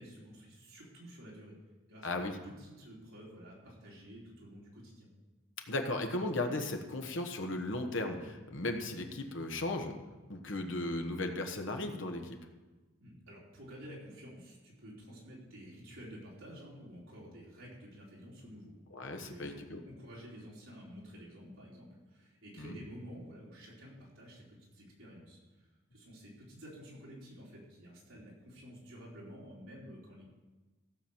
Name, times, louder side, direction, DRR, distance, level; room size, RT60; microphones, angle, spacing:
voice 1, 0.0-1.5 1.9-5.1 13.0-18.7 19.2-19.6 20.0-30.3, equal, 70° right, -5 dB, 4.3 m, -51 dB
voice 2, 2.0-2.4 5.7-9.9 10.3-12.4 18.9-19.8 22.6-22.8, left 2 dB, 60° left, 5 dB, 1.3 m, -36 dB
15.5 x 6.1 x 7.3 m, 1.2 s
head